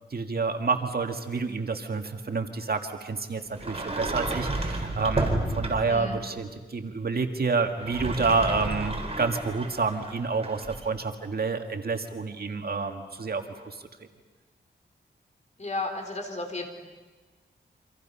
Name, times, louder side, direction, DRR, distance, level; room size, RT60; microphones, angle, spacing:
voice 1, 0.1-13.8, right 4 dB, 55° right, 5 dB, 1.8 m, -29 dB
Sliding door, 3.5-6.1 7.7-10.9, right 2 dB, 30° right, 3.9 m, -31 dB
voice 2, 5.9-6.2 15.6-16.7, left 2 dB, 40° left, 4 dB, 3.7 m, -33 dB
28.5 x 25.5 x 5.6 m, 1.3 s
wide cardioid pair, 75°, 19 cm